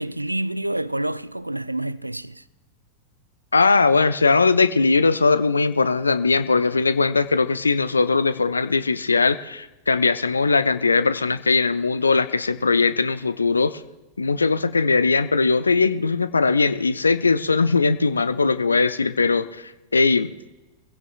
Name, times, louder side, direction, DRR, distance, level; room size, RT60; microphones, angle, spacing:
voice 1, 0.0-2.4, right 1 dB, 85° right, 0.4 m, -28 dB
voice 2, 3.5-13.8 14.2-19.6 19.9-20.3, left 4 dB, 75° left, 0.6 m, -20 dB
22.5 x 16.0 x 2.4 m
figure-of-eight pair, 90°, 0 cm